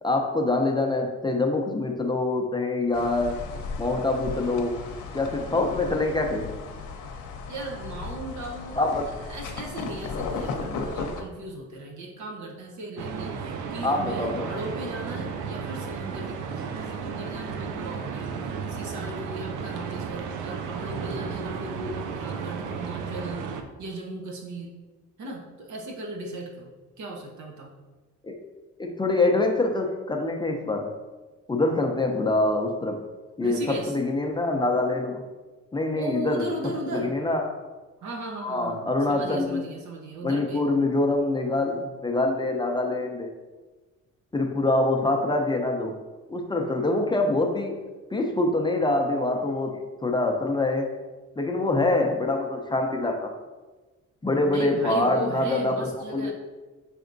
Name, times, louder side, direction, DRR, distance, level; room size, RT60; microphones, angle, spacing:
voice 1, 0.0-3.5 3.8-4.8 5.1-6.5 8.8-9.1 13.8-14.5 28.2-28.4 28.8-30.9 31.5-33.0 33.4-35.2 35.7-36.4 36.9-37.5 38.4-39.6 40.2-43.3 44.3-46.0 46.3-47.8 48.1-50.9 51.4-53.3 54.2-56.3, left 2 dB, 15° left, 2 dB, 0.5 m, -25 dB
sound 1, 2.9-11.2, left 4 dB, 80° left, 0.7 m, -35 dB
voice 2, 7.5-23.4 23.8-24.7 25.2-27.7 33.4-34.0 36.0-37.1 38.0-40.6 51.8-51.9 54.5-56.3, right 2 dB, 70° right, 1 dB, 1.0 m, -37 dB
sound 2, 13.0-23.6, right 6 dB, 90° right, 0.5 m, -33 dB
6.0 x 3.4 x 2.6 m, 1.2 s
cardioid pair, 90°, 30 cm